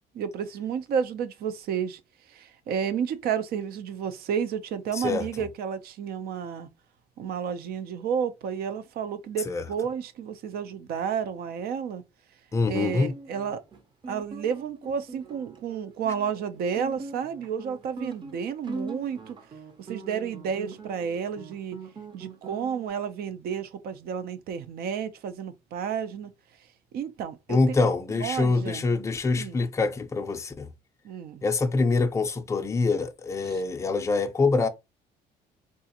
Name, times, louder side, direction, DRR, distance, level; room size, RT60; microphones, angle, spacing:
voice 1, 0.1-2.0 2.3-6.7 7.2-12.0 12.6-13.6 14.1-19.4 19.8-21.8 22.1-26.3 26.9-27.9 28.2-28.9 29.4-29.6 31.0-31.4 33.4-33.6, right 7 dB, 65° right, 0.5 m, -31 dB
voice 2, 4.9-5.3 9.5-9.6 12.5-13.2 27.5-30.7 31.4-34.7, left 3 dB, 15° left, 0.5 m, -25 dB
Guitar, 13.1-22.9, right 4 dB, 25° right, 0.7 m, -42 dB
3.6 x 2.4 x 2.8 m
cardioid pair, 110°, 17 cm